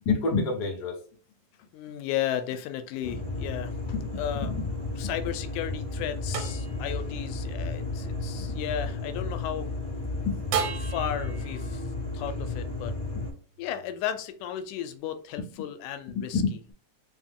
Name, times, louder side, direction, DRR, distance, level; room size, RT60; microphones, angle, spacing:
voice 1, 0.0-0.9 3.1-3.2 4.4-4.6 8.3-8.5 10.3-10.4 13.2-13.3 16.3-16.7, left 4 dB, 55° left, -2 dB, 1.1 m, -28 dB
voice 2, 1.7-3.7 4.1-4.5 5.0-9.7 10.8-12.9 13.6-16.4, left 10 dB, 85° left, 9 dB, 2.0 m, -34 dB
sound 1, 3.0-13.3, left 3 dB, 40° left, 1.1 m, -33 dB
sound 2, 4.2-9.5 10.5-13.9, right 5 dB, 90° right, 2.1 m, -38 dB
4.7 x 2.2 x 3.6 m, 0.41 s
omnidirectional pair, 3.5 m